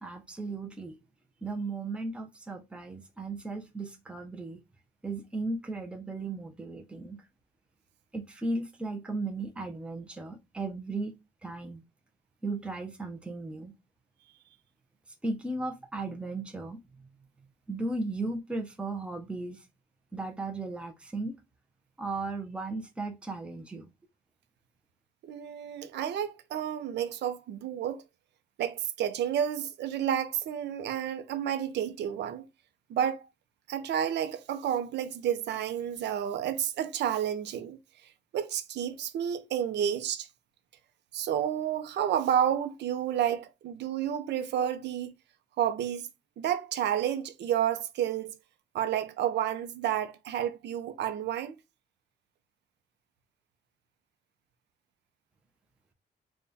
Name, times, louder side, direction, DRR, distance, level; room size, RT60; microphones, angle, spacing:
voice 1, 0.0-1.0 1.4-4.6 5.0-7.2 8.1-11.8 12.4-13.7 15.2-17.1 17.7-19.6 20.1-21.4 22.0-23.9, right 2 dB, 5° right, 0.5 m, -36 dB
voice 2, 25.2-28.0 28.6-32.4 32.9-33.3 33.7-37.8 38.3-40.3 41.1-45.1 45.6-46.1 46.4-48.4 48.7-51.6, right 10 dB, 90° right, 0.6 m, -30 dB
3.5 x 2.2 x 4.0 m
wide cardioid pair, 175°, 17 cm